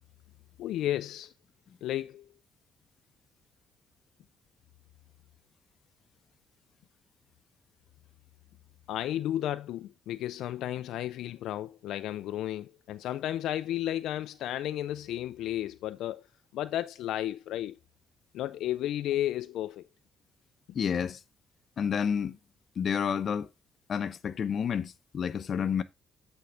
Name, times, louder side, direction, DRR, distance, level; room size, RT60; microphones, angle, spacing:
voice 1, 0.6-1.3 1.8-2.3 8.9-16.3 16.5-17.8 18.3-19.9, left 12 dB, 85° left, 0.4 m, -33 dB
voice 2, 20.7-21.2 21.8-22.4 22.8-23.5 23.9-25.8, left 7 dB, 55° left, 0.7 m, -30 dB
8.4 x 4.5 x 3.8 m
cardioid pair, 90°, 0 cm